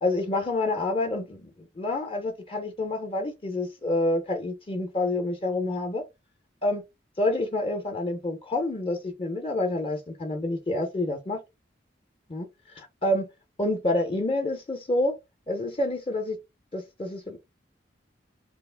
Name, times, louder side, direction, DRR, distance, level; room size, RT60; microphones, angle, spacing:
voice 1, 0.0-6.0 6.6-6.8 7.2-11.4 12.3-13.3 13.6-15.1 15.5-16.4 16.7-17.4, left 2 dB, 30° left, 0.5 m, -28 dB
2.8 x 2.3 x 3.3 m
head